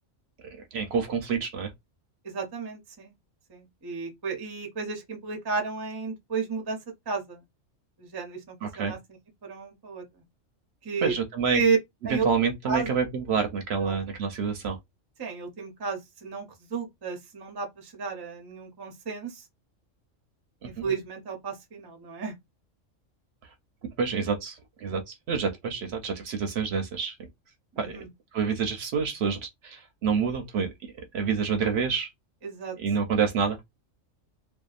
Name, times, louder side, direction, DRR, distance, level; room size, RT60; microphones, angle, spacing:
voice 1, 0.4-1.7 8.6-8.9 11.0-11.6 12.1-14.8 20.6-20.8 24.0-27.1 27.8-28.0 28.3-30.7 31.1-32.1 32.8-33.6, right 6 dB, 65° right, 0.7 m, -28 dB
voice 2, 2.2-3.1 3.5-6.8 7.1-7.4 8.0-9.0 9.4-10.0 10.8-11.2 11.5-11.8 12.0-12.3 12.7-12.9 13.8-14.0 15.2-19.5 20.8-22.3 27.7-28.1 32.4-32.7, right 5 dB, 30° right, 0.5 m, -32 dB
2.7 x 2.3 x 2.3 m
omnidirectional pair, 1.3 m